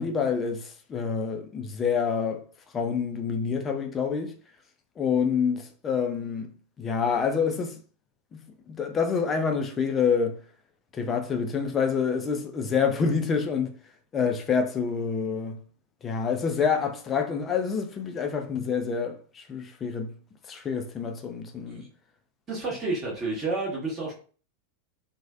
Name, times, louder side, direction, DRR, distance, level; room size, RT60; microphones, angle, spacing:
voice 1, 0.0-2.4 2.7-4.3 5.0-6.5 6.8-7.7 8.3-10.4 11.0-13.7 14.1-15.6 16.0-20.1 20.5-21.8, left 6 dB, 25° left, 0.5 m, -27 dB
voice 2, 22.5-24.1, right 3 dB, 20° right, 1.3 m, -30 dB
3.1 x 2.2 x 2.4 m
figure-of-eight pair, 90°, 0 cm